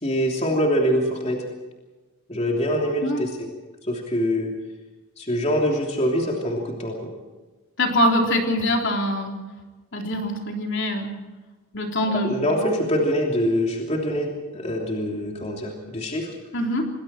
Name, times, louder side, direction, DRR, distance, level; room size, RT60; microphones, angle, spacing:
voice 1, 0.0-1.4 2.3-3.5 3.8-4.6 5.2-7.1 12.1-16.3, equal, 30° left, 0 dB, 3.1 m, -24 dB
voice 2, 7.8-9.4 9.9-11.2 11.7-12.4 16.5-16.9, left 1 dB, 55° left, 1 dB, 3.7 m, -23 dB
28.0 x 21.0 x 4.5 m, 1.2 s
head